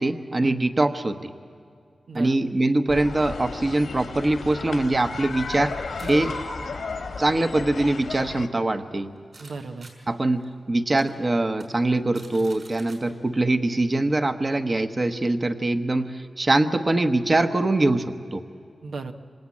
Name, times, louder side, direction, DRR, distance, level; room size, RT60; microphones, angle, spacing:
voice 1, 0.0-1.3 2.1-5.8 6.1-6.3 7.2-9.1 10.1-18.4, right 2 dB, 35° right, 8 dB, 1.1 m, -23 dB
voice 2, 2.1-2.5 6.0-6.4 9.4-9.9 18.8-19.1, right 4 dB, 85° right, 5 dB, 1.2 m, -36 dB
sound 1, 2.9-8.5, left 4 dB, 85° left, 2.2 m, -34 dB
sound 2, 5.9-9.5 9.8-9.9 10.4-10.5 11.0-11.1 11.5-11.6 11.9-13.0, right 2 dB, 55° right, 5.8 m, -48 dB
27.0 x 25.0 x 8.5 m, 2.2 s
wide cardioid pair, 90°, 0 cm